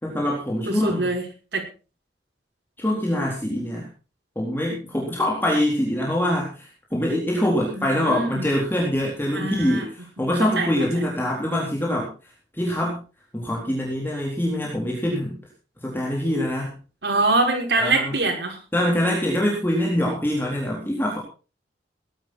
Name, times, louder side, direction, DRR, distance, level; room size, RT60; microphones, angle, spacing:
voice 1, 0.0-1.1 2.8-3.9 4.4-12.1 12.5-13.0 13.3-15.4 15.8-16.8 17.7-18.2 18.7-21.2, left 1 dB, 10° left, -3 dB, 4.0 m, -24 dB
voice 2, 0.7-1.2 1.5-1.6 7.7-8.5 9.3-9.8 10.2-10.7 17.0-18.6, right 2 dB, 75° right, 0 dB, 6.3 m, -24 dB
18.5 x 12.0 x 4.4 m, 0.35 s
head